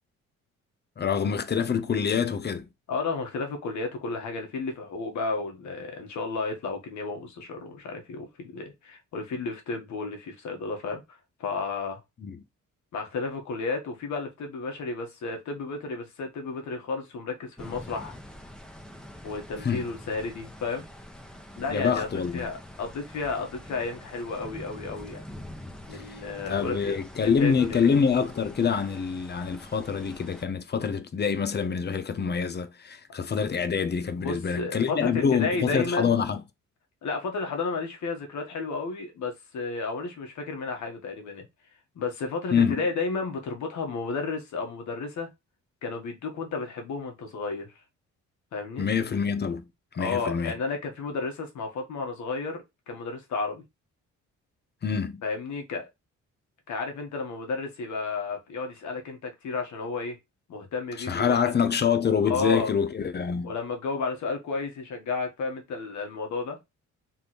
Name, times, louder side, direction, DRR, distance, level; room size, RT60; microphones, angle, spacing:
voice 1, 1.0-2.7 12.2-12.4 19.6-19.9 21.7-22.5 25.9-36.4 42.5-42.8 48.8-49.7 49.9-50.5 54.8-55.2 61.0-63.5, left 6 dB, 35° left, 0.8 m, -26 dB
voice 2, 2.9-12.0 12.9-18.2 19.2-20.9 21.6-25.2 25.9-27.0 27.2-27.8 34.2-36.2 37.0-41.5 41.9-45.3 45.8-47.7 48.5-48.9 50.0-53.6 55.2-55.9 56.7-60.2 60.5-61.4 62.3-62.7 63.4-66.6, left 4 dB, 70° left, 1.6 m, -32 dB
sound 1, 17.6-30.4, left 1 dB, 5° left, 0.9 m, -45 dB
3.6 x 3.2 x 4.2 m
cardioid pair, 90°, 30 cm